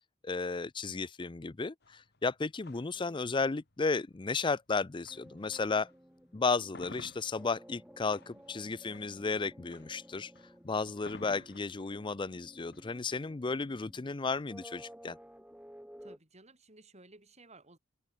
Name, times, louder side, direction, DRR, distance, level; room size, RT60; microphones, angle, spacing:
voice 1, 0.2-5.9 6.3-10.3 10.6-15.2, left 4 dB, 25° left, 0.5 m, -34 dB
sound 1, 1.8-6.0 6.4-14.3, left 2 dB, 55° left, 3.6 m, -54 dB
voice 2, 2.9-3.3 8.2-8.5 11.9-12.4 16.0-17.8, right 2 dB, 35° right, 7.4 m, -58 dB
sound 2, 5.1-16.2, equal, 5° right, 3.8 m, -55 dB
head